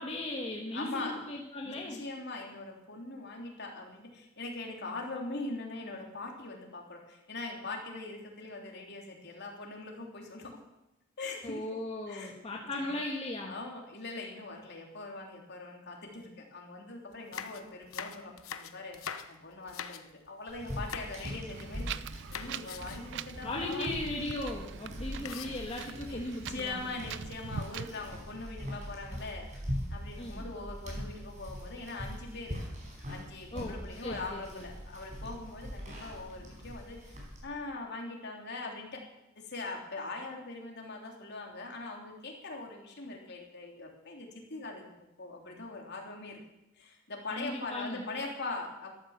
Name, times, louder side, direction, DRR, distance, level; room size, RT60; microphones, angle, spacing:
voice 1, 0.0-2.0 11.4-13.6 23.4-26.9 30.2-30.5 33.5-34.7 47.3-48.1, left 2 dB, 30° left, -1 dB, 1.6 m, -37 dB
voice 2, 0.7-1.2 1.6-10.6 11.2-11.6 12.1-12.3 12.7-12.9 13.5-24.0 25.1-25.3 26.1-26.2 26.5-29.5 29.9-32.6 33.1-39.0 39.3-44.9 45.2-46.4 46.8-48.9, left 3 dB, 55° left, 1 dB, 3.3 m, -42 dB
Chopping mushrooms, 17.1-20.3 20.8-21.3 21.6-22.0 22.3-23.1 23.5-23.6 23.9-24.1 25.3-26.2 26.8-27.4, left 7 dB, 85° left, 1.0 m, -44 dB
sound 1, 20.5-37.4, equal, 35° right, 4.9 m, -42 dB
Wind, 21.5-27.9, right 8 dB, 60° right, 0.4 m, -43 dB
13.5 x 12.5 x 7.3 m, 0.94 s
head